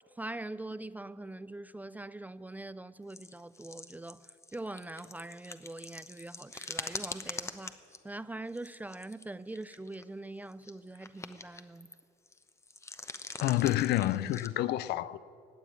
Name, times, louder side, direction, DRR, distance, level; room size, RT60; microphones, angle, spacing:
voice 1, 0.2-7.8 8.0-11.9, right 2 dB, 10° right, 0.3 m, -43 dB
sound 1, 3.1-8.0 8.5-9.2 9.5-10.0 10.5-12.0 12.3-14.5, left 3 dB, 15° left, 0.8 m, -43 dB
voice 2, 13.4-15.2, left 14 dB, 75° left, 0.5 m, -28 dB
17.5 x 7.0 x 9.9 m
cardioid pair, 110°, 17 cm